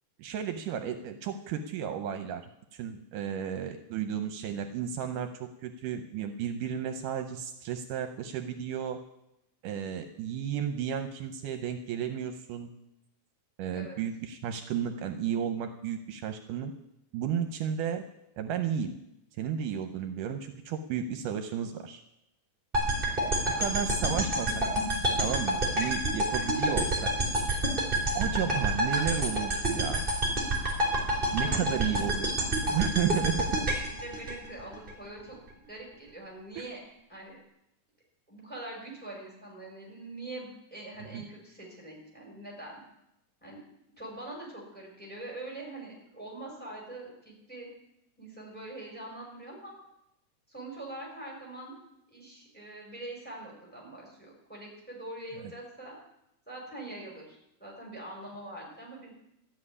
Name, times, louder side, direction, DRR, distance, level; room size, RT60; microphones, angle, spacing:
voice 1, 0.2-2.4 2.7-9.0 9.6-12.7 13.6-16.7 17.1-18.0 18.4-19.0 19.4-22.0 23.4-24.6 25.2-27.1 28.2-30.1 31.3-32.3 32.6-33.7 36.6-36.7 41.1-41.2, right 8 dB, 80° right, 7 dB, 2.3 m, -33 dB
voice 2, 13.7-14.0 22.9-23.2 31.4-32.4 33.8-36.8 37.1-37.4 38.3-42.8 43.4-43.6 44.0-47.7 48.2-49.7 50.5-51.7 52.1-55.9 56.5-59.1, right 2 dB, 5° left, -2 dB, 5.5 m, -44 dB
sound 1, 22.7-34.9, right 1 dB, 15° right, 3.1 m, -28 dB
14.0 x 7.6 x 9.8 m, 0.84 s
omnidirectional pair, 3.8 m